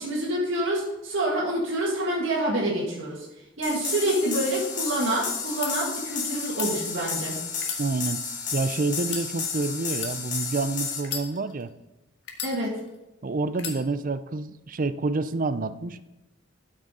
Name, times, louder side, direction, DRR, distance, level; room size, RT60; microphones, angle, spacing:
voice 1, 0.0-3.3 3.6-7.4 12.4-12.7, right 1 dB, 75° right, -5 dB, 2.0 m, -27 dB
sound 1, 3.6-11.0, left 5 dB, 45° left, 1.8 m, -32 dB
sound 2, 5.6-5.7 6.4-6.7 7.5-8.5 9.0-9.3 9.9-10.2 11.0-11.7 12.3-13.0 13.5-13.8, left 6 dB, 65° left, 1.5 m, -35 dB
voice 2, 7.8-8.3 8.5-11.7 13.2-16.1, right 3 dB, 45° right, 13 dB, 0.5 m, -28 dB
12.5 x 6.3 x 3.9 m, 0.94 s
head